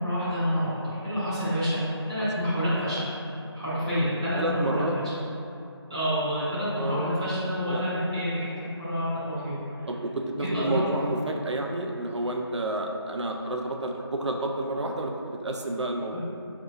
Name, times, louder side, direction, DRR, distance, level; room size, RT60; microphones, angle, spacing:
voice 1, 0.0-3.1 3.5-5.0 5.9-9.8 10.4-10.8 16.1-16.2, equal, 10° right, -15 dB, 0.7 m, -28 dB
voice 2, 2.2-2.6 4.4-4.9 6.7-7.0 7.6-7.8 9.9-16.2, right 1 dB, 85° right, 2 dB, 0.4 m, -30 dB
4.7 x 2.7 x 2.5 m, 2.7 s
figure-of-eight pair, 165°, 14 cm